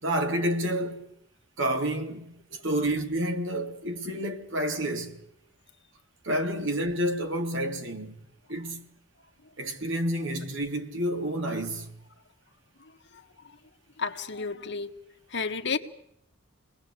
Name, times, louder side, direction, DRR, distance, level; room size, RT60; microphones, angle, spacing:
voice 1, 0.0-1.0 1.6-2.3 2.6-5.2 6.2-8.2 8.5-8.8 9.6-11.9, right 1 dB, 60° right, 3.4 m, -29 dB
voice 2, 12.8-13.6 14.0-15.0 15.3-15.8, left 5 dB, 55° left, 1.9 m, -33 dB
28.5 x 20.5 x 8.5 m
head